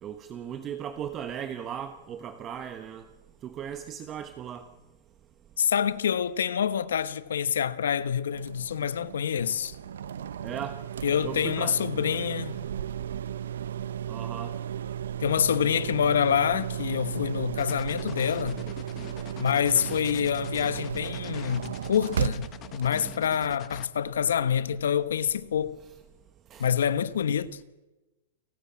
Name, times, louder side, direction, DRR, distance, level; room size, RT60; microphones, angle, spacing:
voice 1, 0.0-3.1 3.4-4.6 10.4-10.8 11.2-11.8 12.5-12.7 14.1-14.6 26.5-26.7, right 9 dB, 25° right, 1.2 m, -37 dB
voice 2, 5.6-9.8 11.0-12.6 15.2-18.6 19.4-25.8 26.6-27.6, left 8 dB, 90° left, 1.2 m, -26 dB
sound 1, 8.3-23.5, right 9 dB, 85° right, 0.8 m, -35 dB
sound 2, 17.6-23.9, left 11 dB, 25° left, 1.1 m, -45 dB
29.0 x 14.5 x 8.7 m
hypercardioid pair, 145°, 0 cm